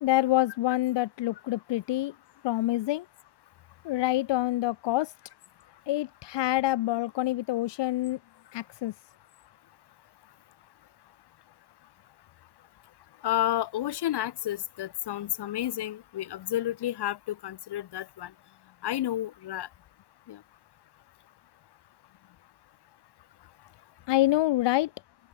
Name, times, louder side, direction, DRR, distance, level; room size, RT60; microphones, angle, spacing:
voice 1, 0.0-2.1 2.4-3.0 3.9-5.1 5.9-8.2 8.5-8.9 24.1-24.9, left 16 dB, 85° left, 0.6 m, -26 dB
voice 2, 13.2-17.2 17.4-18.3 18.8-19.7 20.3-20.4, left 13 dB, 70° left, 0.9 m, -31 dB
open air
wide cardioid pair, 160°, 42 cm